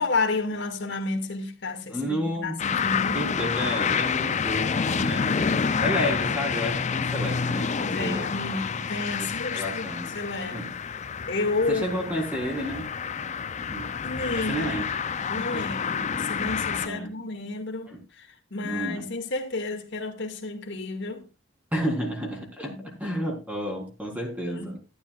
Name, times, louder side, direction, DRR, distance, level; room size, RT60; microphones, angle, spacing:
voice 1, 0.0-3.2 7.9-10.7 11.3-12.0 14.0-14.8 15.3-21.2 22.7-23.0 24.5-24.7, left 3 dB, 60° left, 2.2 m, -31 dB
voice 2, 1.9-2.6 3.1-8.3 9.2-10.2 10.5-10.7 11.7-12.9 13.2-13.3 13.7-13.9 14.5-14.8 15.5-15.6 16.8-17.1 17.9-18.0 18.6-19.0 21.7-22.7 23.0-24.8, equal, 10° right, 4.0 m, -31 dB
sound 1, 2.6-16.9, left 6 dB, 35° left, 0.5 m, -28 dB
13.5 x 12.5 x 2.5 m
head